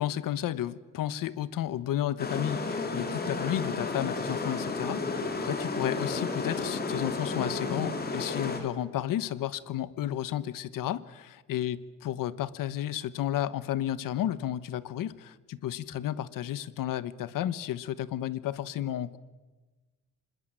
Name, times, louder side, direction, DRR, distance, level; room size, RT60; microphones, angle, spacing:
voice 1, 0.0-19.2, left 12 dB, 80° left, 16 dB, 1.2 m, -32 dB
sound 1, 2.2-8.6, left 3 dB, 30° left, 3.5 m, -32 dB
26.0 x 20.5 x 8.9 m, 1.2 s
cardioid pair, 145°, 33 cm